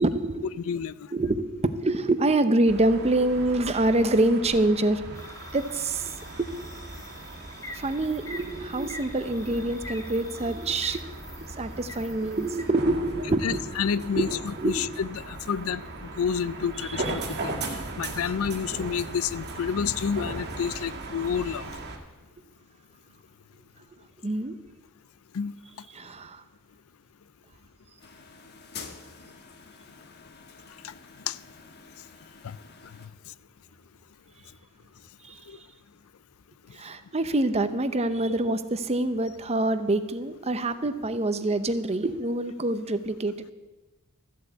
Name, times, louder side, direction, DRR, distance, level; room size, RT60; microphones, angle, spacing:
voice 1, 0.0-0.5 1.1-5.2 5.5-6.7 7.7-11.0 11.6-13.6 13.9-14.3 14.6-14.9 16.9-17.3 24.2-24.5 25.9-26.4 35.2-35.4 36.7-43.5, right 2 dB, 30° right, 11 dB, 0.7 m, -26 dB
voice 2, 0.7-1.0 13.4-14.3 14.6-17.6 18.0-21.7 25.3-25.5 30.8-30.9 31.3-31.4 32.4-32.6 35.5-35.6, left 7 dB, 65° left, 17 dB, 0.4 m, -29 dB
sound 1, 2.7-22.0, right 2 dB, 50° right, 1.9 m, -38 dB
sound 2, 5.1-12.7, left 2 dB, 15° left, 1.4 m, -45 dB
sound 3, 28.0-33.1, left 5 dB, 50° left, 1.3 m, -47 dB
14.0 x 8.0 x 8.1 m, 1.2 s
head